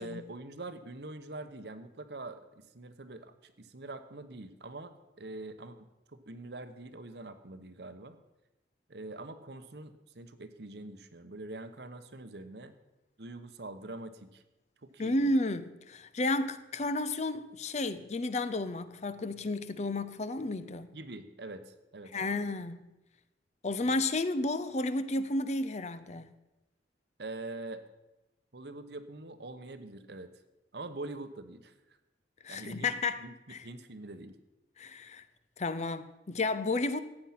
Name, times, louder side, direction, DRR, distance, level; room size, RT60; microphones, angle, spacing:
voice 1, 0.0-8.2 8.9-12.7 13.2-14.4 14.8-15.3 20.9-22.5 23.8-24.0 27.2-27.8 28.5-30.4 30.7-31.7 32.5-32.9 33.2-33.3 33.6-34.4, right 2 dB, 65° right, 1.0 m, -44 dB
voice 2, 15.0-20.9 22.1-22.9 23.6-26.3 32.4-33.2 33.5-33.6 34.8-35.2 35.6-37.0, left 2 dB, 40° left, 0.6 m, -32 dB
15.0 x 9.0 x 5.8 m
head